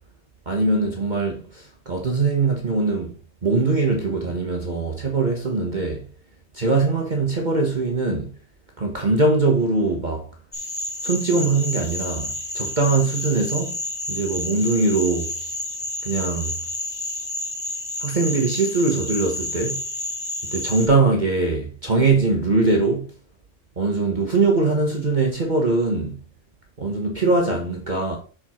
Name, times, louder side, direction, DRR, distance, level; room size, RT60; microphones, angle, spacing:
voice 1, 0.5-3.2 3.4-6.1 6.5-8.3 8.8-10.3 11.0-13.8 14.1-15.3 16.0-16.5 18.0-19.8 20.4-23.1 23.8-26.2 26.8-28.2, right 3 dB, 35° right, 1.3 m, -22 dB
sound 1, 10.5-20.9, left 1 dB, 15° left, 1.3 m, -30 dB
7.1 x 5.0 x 4.3 m
omnidirectional pair, 1.4 m